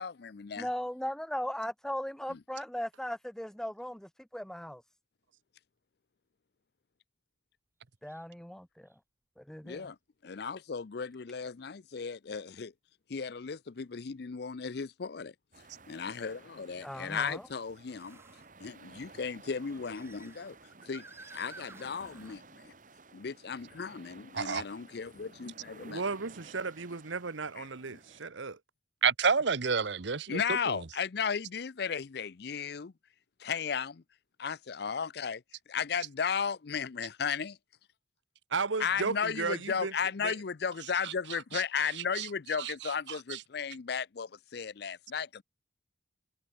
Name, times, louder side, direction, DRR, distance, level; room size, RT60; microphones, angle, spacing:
voice 1, 0.0-0.7 2.3-2.4 9.6-10.0 10.2-12.7 13.1-15.3 15.9-18.2 18.6-20.6 20.9-21.0 21.3-22.7 23.1-26.0 27.6-27.7 27.9-28.0 30.3-32.9 33.4-34.0 34.4-37.6 38.8-45.4, left 6 dB, 55° left, 0.5 m, -35 dB
voice 2, 0.6-4.8 8.0-8.9 9.4-9.9 16.8-17.4, equal, 5° left, 0.4 m, -38 dB
sound 1, 8.1-8.2 8.9-9.0 11.0-11.1 14.7-14.8 18.0-18.5 19.5-22.4, right 3 dB, 15° right, 2.2 m, -53 dB
sound 2, 15.5-28.2, right 3 dB, 45° right, 2.6 m, -55 dB
voice 3, 24.3-24.6 29.0-30.8 41.0-41.1 41.5-41.6 42.1-42.3 42.6-43.4, right 5 dB, 65° right, 0.9 m, -30 dB
voice 4, 25.8-28.6 38.5-39.9 40.2-40.3, right 4 dB, 80° right, 1.1 m, -34 dB
head